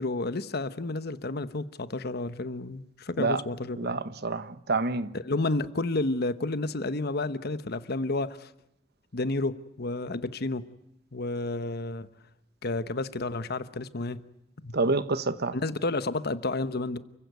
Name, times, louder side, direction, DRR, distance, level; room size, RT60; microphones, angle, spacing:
voice 1, 0.0-4.0 5.1-8.5 9.1-10.6 11.1-12.1 12.6-14.2 14.6-14.7 15.5-17.0, left 2 dB, 55° left, 1.1 m, -31 dB
voice 2, 3.8-5.1 14.7-15.6, right 3 dB, 55° right, 1.2 m, -27 dB
29.5 x 16.0 x 9.5 m
head